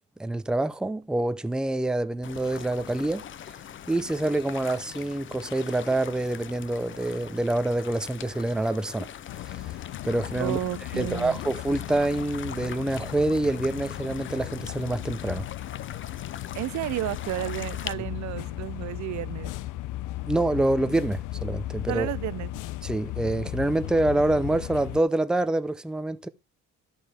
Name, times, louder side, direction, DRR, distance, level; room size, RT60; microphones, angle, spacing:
voice 1, 0.2-3.2 3.9-9.1 9.3-9.8 10.0-10.6 11.0-15.5 20.2-22.1 22.8-26.3, right 2 dB, 5° right, 0.5 m, -26 dB
sound 1, 2.2-17.9, left 10 dB, 40° left, 0.6 m, -42 dB
sound 2, 9.3-25.0, left 15 dB, 90° left, 0.6 m, -36 dB
voice 2, 10.4-11.4 16.5-19.5 21.9-22.6, right 16 dB, 65° right, 0.5 m, -32 dB
11.5 x 5.4 x 4.2 m
cardioid pair, 125°, 30 cm